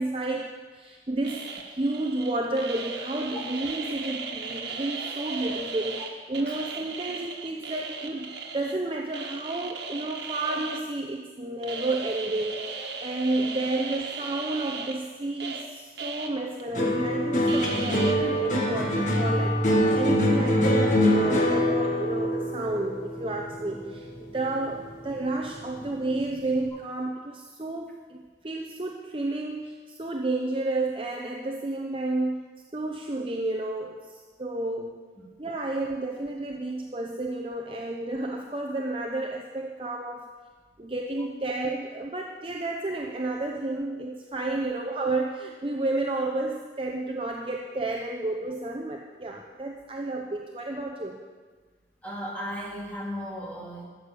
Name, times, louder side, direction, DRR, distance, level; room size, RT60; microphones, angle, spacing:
voice 1, 0.0-32.4 32.7-35.0 35.4-40.3 40.8-51.2, right 2 dB, 30° right, 1 dB, 0.8 m, -31 dB
sound 1, 1.2-6.1 6.3-8.7 9.1-10.8 11.6-15.6 16.0-16.3 16.6-16.7 17.5-18.1, right 4 dB, 85° right, 1.5 m, -36 dB
sound 2, 16.7-25.2 25.5-26.2, equal, 45° left, 1.8 m, -25 dB
voice 2, 52.0-53.8, equal, 10° left, -5 dB, 2.7 m, -36 dB
13.0 x 7.9 x 6.8 m, 1.4 s
head